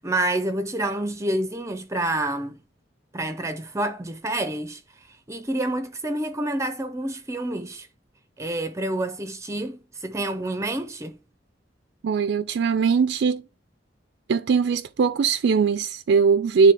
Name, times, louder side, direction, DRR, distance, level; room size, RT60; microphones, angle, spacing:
voice 1, 0.0-2.6 3.1-4.8 5.1-7.9 8.4-11.2, right 1 dB, 15° right, 0.5 m, -28 dB
voice 2, 12.0-13.4 14.3-16.7, right 5 dB, 70° right, 0.4 m, -20 dB
9.2 x 3.6 x 3.3 m
head